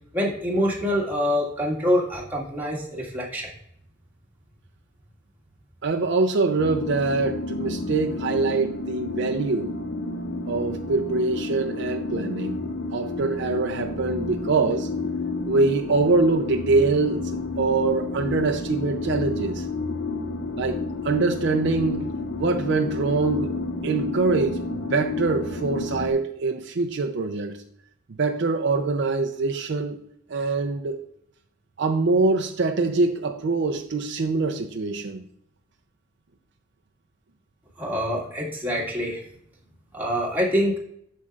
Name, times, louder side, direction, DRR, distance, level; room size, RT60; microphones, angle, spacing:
voice 1, 0.1-3.5 37.8-39.2 39.9-40.8, equal, 10° right, 2.0 m, -25 dB
voice 2, 5.8-9.8 10.5-12.6 12.9-14.9 15.4-19.7 20.6-27.6 28.2-30.0 30.3-31.1 31.8-35.2, right 3 dB, 65° right, 0.5 m, -24 dB
sound 1, 6.6-26.1, left 3 dB, 65° left, 0.8 m, -30 dB
8.2 x 6.4 x 2.4 m
head